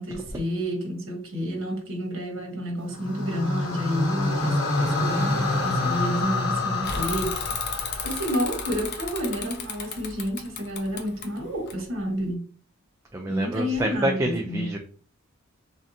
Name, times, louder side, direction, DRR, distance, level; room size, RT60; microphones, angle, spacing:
voice 1, 0.0-7.5 8.0-12.4 13.3-14.7, equal, 70° right, 1.1 m, -30 dB
sound 1, 2.9-9.2, left 2 dB, 80° left, 1.1 m, -27 dB
Bicycle / Mechanisms, 6.8-12.3, left 5 dB, 55° left, 0.6 m, -34 dB
voice 2, 13.1-14.8, right 1 dB, 15° right, 0.3 m, -27 dB
3.3 x 2.6 x 2.7 m
head